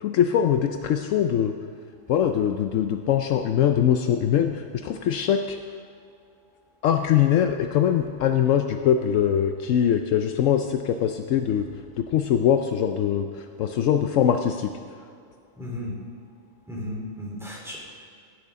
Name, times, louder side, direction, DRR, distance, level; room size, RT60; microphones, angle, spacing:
voice 1, 0.0-1.6 2.1-5.6 6.8-11.7 12.0-14.7, left 9 dB, 75° left, 6 dB, 0.9 m, -22 dB
voice 2, 15.6-15.9 16.7-17.8, left 1 dB, ahead, -5 dB, 3.4 m, -34 dB
15.5 x 11.0 x 3.7 m, 2.3 s
omnidirectional pair, 1.4 m